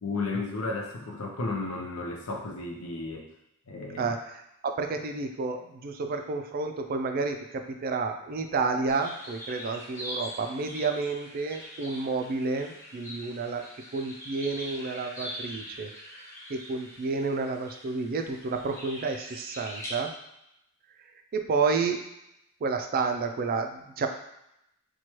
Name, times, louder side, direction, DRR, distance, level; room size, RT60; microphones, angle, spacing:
voice 1, 0.0-3.3 3.7-4.1, left 3 dB, 70° left, 0 dB, 0.7 m, -33 dB
voice 2, 4.0-13.6 13.9-20.1 21.3-22.0 22.6-24.1, right 4 dB, 40° right, 5 dB, 0.4 m, -30 dB
sound 1, 8.9-19.9, equal, 15° left, 0.8 m, -43 dB
4.3 x 2.3 x 3.0 m, 0.82 s
head